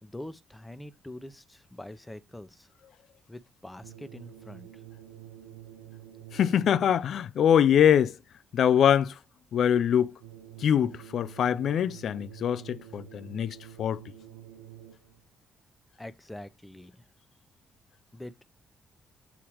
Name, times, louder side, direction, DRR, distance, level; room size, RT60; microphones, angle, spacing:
voice 1, 0.0-2.7 3.3-4.8 16.0-17.0 18.1-18.4, left 1 dB, 15° left, 0.8 m, -44 dB
sound 1, 3.8-7.2 10.2-15.2, right 11 dB, 85° right, 0.5 m, -48 dB
voice 2, 6.3-8.2 8.5-9.2 9.5-10.1 10.6-14.0, left 9 dB, 65° left, 0.4 m, -23 dB
7.1 x 2.8 x 4.8 m
hypercardioid pair, 45°, 0 cm